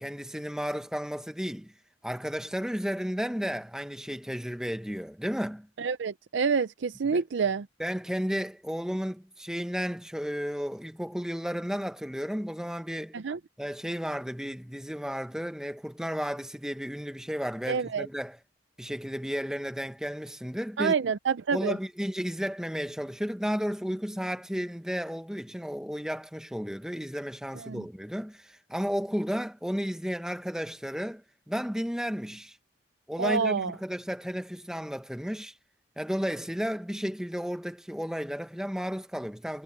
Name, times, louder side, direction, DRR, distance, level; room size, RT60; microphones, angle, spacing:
voice 1, 0.0-1.7 2.0-5.7 7.1-7.2 7.8-13.2 13.6-18.4 18.8-20.9 21.5-31.2 31.5-32.6 33.1-35.5 36.0-39.6, equal, 5° right, 1.1 m, -33 dB
voice 2, 5.8-7.7 13.1-13.4 17.7-18.1 20.8-21.8 27.5-27.8 33.2-33.7, right 5 dB, 65° right, 0.5 m, -28 dB
head